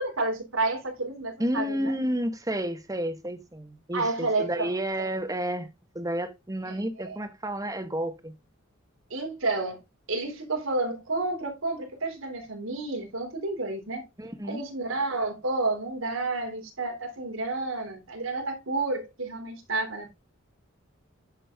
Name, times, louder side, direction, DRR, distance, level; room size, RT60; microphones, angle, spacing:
voice 1, 0.0-1.9 3.9-4.7 5.0-5.1 6.6-7.2 9.1-9.8 10.1-14.0 14.5-20.1, right 2 dB, 90° right, 3.5 m, -30 dB
voice 2, 1.4-5.7 5.9-8.3 14.2-14.7, right 1 dB, 15° right, 1.6 m, -31 dB
10.5 x 6.6 x 3.7 m
head